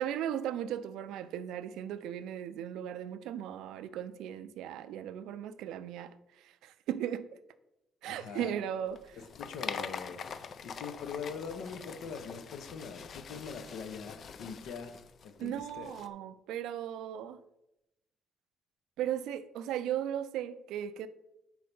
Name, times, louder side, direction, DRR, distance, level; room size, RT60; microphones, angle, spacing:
voice 1, 0.0-7.3 8.0-9.2 15.4-17.4 19.0-21.1, right 10 dB, 85° right, 0.3 m, -37 dB
voice 2, 8.0-8.6 9.1-10.2 10.6-15.0 15.2-15.9, left 6 dB, 75° left, 0.7 m, -42 dB
sound 1, 8.9-16.1, left 6 dB, 45° left, 0.4 m, -44 dB
4.6 x 4.3 x 5.3 m
cardioid pair, 140°, 0 cm